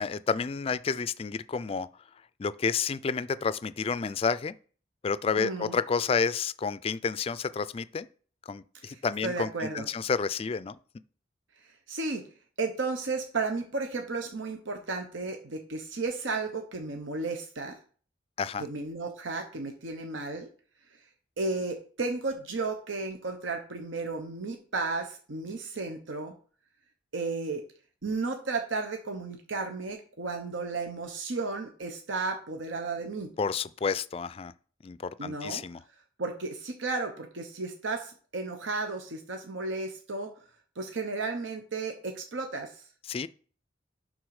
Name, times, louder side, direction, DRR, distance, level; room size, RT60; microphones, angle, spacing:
voice 1, 0.0-1.9 2.4-4.5 5.0-8.1 8.5-10.8 18.4-18.7 33.4-34.5 34.8-35.8 43.1-43.3, left 5 dB, 30° left, 0.3 m, -30 dB
voice 2, 5.4-5.8 8.8-9.9 11.9-12.3 12.6-17.8 18.6-20.5 21.4-26.4 27.1-27.6 28.0-33.3 35.2-35.6 36.2-40.3 40.8-42.8, right 3 dB, 85° right, 1.0 m, -33 dB
11.0 x 3.9 x 4.8 m
head